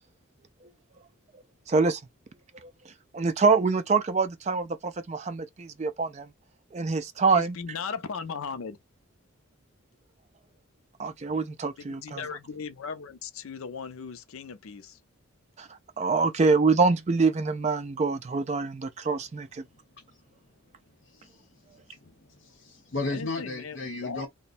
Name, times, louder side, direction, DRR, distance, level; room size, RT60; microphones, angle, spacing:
voice 1, 1.7-2.0 3.1-6.3 6.7-7.6 11.0-12.3 15.6-15.7 16.0-19.6, right 4 dB, 30° right, 0.3 m, -25 dB
voice 2, 7.3-8.8 11.8-15.0 23.1-23.8 24.0-24.3, left 5 dB, 75° left, 0.5 m, -37 dB
voice 3, 19.7-20.3 21.0-24.3, left 3 dB, 50° left, 1.0 m, -36 dB
3.0 x 2.2 x 4.1 m
head